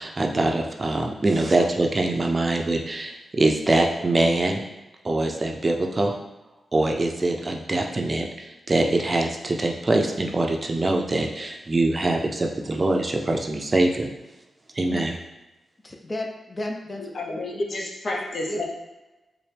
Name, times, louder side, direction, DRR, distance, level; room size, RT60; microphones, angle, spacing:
voice 1, 0.0-4.6 5.0-6.2 6.7-14.1 14.7-15.1, right 2 dB, 35° right, 2 dB, 0.5 m, -23 dB
voice 2, 15.8-17.1 17.7-18.2 18.5-18.6, left 1 dB, 30° left, 2 dB, 0.6 m, -33 dB
voice 3, 17.0-18.6, left 2 dB, 65° left, -2 dB, 0.8 m, -30 dB
4.2 x 2.2 x 3.3 m, 1.0 s
cardioid pair, 60°, 0 cm